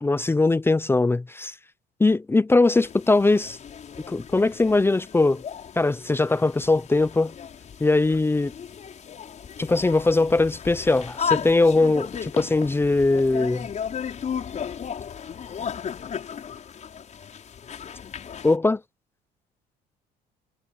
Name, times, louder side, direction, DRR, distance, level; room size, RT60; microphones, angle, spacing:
voice 1, 0.0-1.5 2.0-3.6 4.1-5.4 5.8-7.3 7.8-8.5 9.6-13.7 18.4-18.8, left 3 dB, 15° left, 0.7 m, -21 dB
sound 1, 2.8-18.6, left 7 dB, 45° left, 6.3 m, -35 dB
cardioid pair, 110°, 17 cm